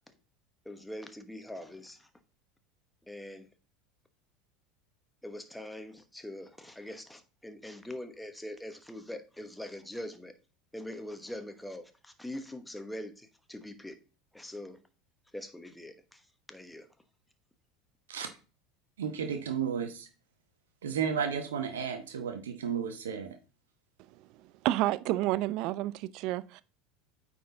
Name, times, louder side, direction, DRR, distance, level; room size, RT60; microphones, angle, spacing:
voice 1, 0.6-2.1 3.1-3.5 5.2-10.3 10.7-14.0 14.3-14.8 15.3-16.9, left 1 dB, 5° left, 1.1 m, -43 dB
voice 2, 19.0-20.1 20.8-23.4, right 7 dB, 80° right, 1.0 m, -33 dB
voice 3, 24.6-26.6, right 15 dB, 55° right, 0.4 m, -29 dB
9.1 x 4.4 x 3.8 m
hypercardioid pair, 75°, 0 cm